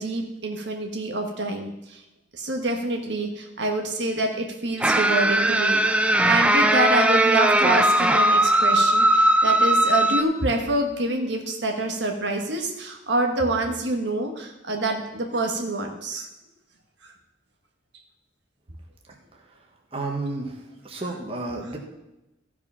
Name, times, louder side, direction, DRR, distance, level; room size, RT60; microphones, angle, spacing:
voice 1, 0.0-2.0 2.3-16.3 17.0-17.1, right 2 dB, 65° right, 2 dB, 1.3 m, -26 dB
sound 1, 4.8-10.2, right 1 dB, 5° right, 0.4 m, -19 dB
voice 2, 19.9-20.6 20.8-21.8, right 2 dB, 30° right, 0 dB, 1.4 m, -31 dB
15.0 x 5.0 x 5.6 m, 0.92 s
head